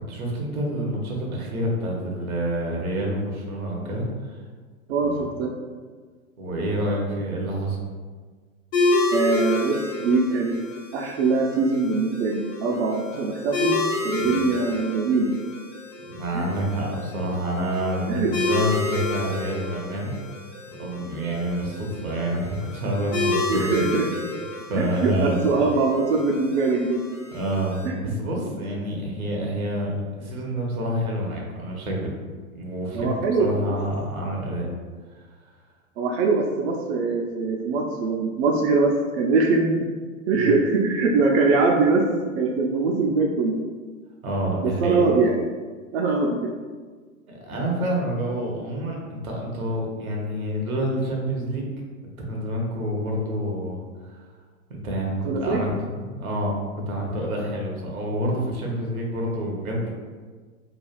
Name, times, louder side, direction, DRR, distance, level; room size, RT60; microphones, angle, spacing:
voice 1, 0.1-4.4 5.0-5.3 6.4-7.8 14.2-14.4 16.1-20.1 20.8-23.8 24.6-25.5 27.3-32.1 32.5-33.1 33.4-34.7 40.3-40.5 44.2-45.0 47.3-51.7 52.3-53.8 54.1-54.2 54.7-56.6 56.9-59.9, right 1 dB, 85° right, -1 dB, 0.9 m, -28 dB
voice 2, 4.9-5.5 9.1-10.6 10.9-15.3 16.3-16.5 18.1-18.3 23.5-24.1 24.7-27.0 27.8-28.1 32.9-33.6 36.0-39.7 40.3-42.0 42.4-43.6 44.6-45.4 45.9-46.5 55.3-55.7, right 3 dB, 55° right, 0 dB, 0.5 m, -22 dB
sound 1, 8.7-27.9, left 2 dB, 60° left, 0.9 m, -30 dB
3.2 x 2.3 x 2.3 m, 1.5 s
hypercardioid pair, 105°, 42 cm